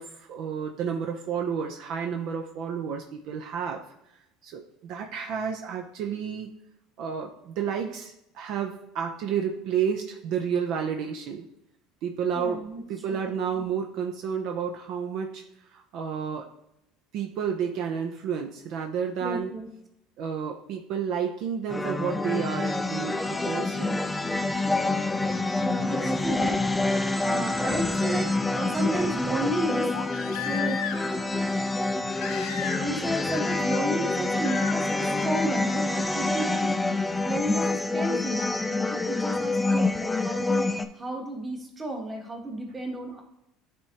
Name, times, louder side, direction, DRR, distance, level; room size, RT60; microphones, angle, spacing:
voice 1, 0.0-3.8 4.4-6.6 7.0-11.5 12.0-12.6 12.9-15.4 15.7-16.5 17.1-19.5 20.2-23.2 23.5-24.0, right 7 dB, 60° right, 3 dB, 0.6 m, -31 dB
voice 2, 12.3-12.8 13.1-13.6 19.2-19.7 25.6-29.9 30.3-30.8 32.8-43.2, right 1 dB, 20° right, 1 dB, 1.4 m, -33 dB
sound 1, 21.7-40.9, left 2 dB, 10° left, 0.4 m, -27 dB
Crying sobbing, 27.2-27.3 29.9-31.2 32.2-33.0 33.3-33.8 34.4-34.8 36.4-36.5, left 9 dB, 80° left, 0.6 m, -35 dB
9.5 x 3.5 x 2.9 m, 0.82 s
supercardioid pair, 100°, 0 cm